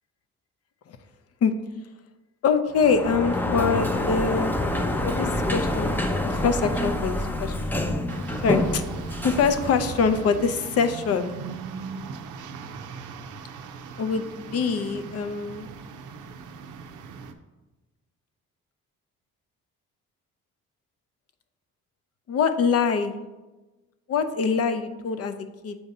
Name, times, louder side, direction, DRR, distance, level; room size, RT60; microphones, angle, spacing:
voice 1, 2.4-4.5 5.0-5.9 6.2-7.6 8.4-8.8 9.2-11.3 14.0-15.7 22.3-23.2 24.1-25.8, left 5 dB, 55° left, 9 dB, 0.6 m, -24 dB
Sliding door, 2.7-10.5, left 1 dB, 5° left, 0.5 m, -27 dB
sound 1, 8.1-17.3, right 5 dB, 85° right, 0.6 m, -39 dB
7.0 x 2.7 x 5.3 m, 1.1 s
cardioid pair, 100°, 30 cm